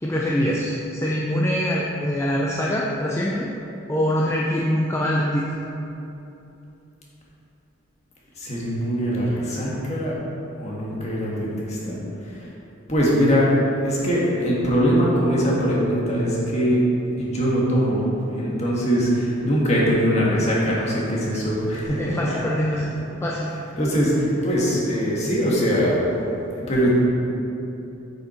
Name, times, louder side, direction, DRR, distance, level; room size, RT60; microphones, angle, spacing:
voice 1, 0.0-3.5 3.9-5.6 22.0-23.0 23.2-23.5, equal, 15° left, -4 dB, 0.5 m, -24 dB
voice 2, 8.4-10.2 10.6-12.0 12.3-12.5 12.9-16.9 17.2-18.0 18.3-22.4 23.6-26.0 26.5-27.0, equal, 30° left, -5 dB, 1.7 m, -22 dB
8.0 x 6.9 x 4.4 m, 2.9 s
head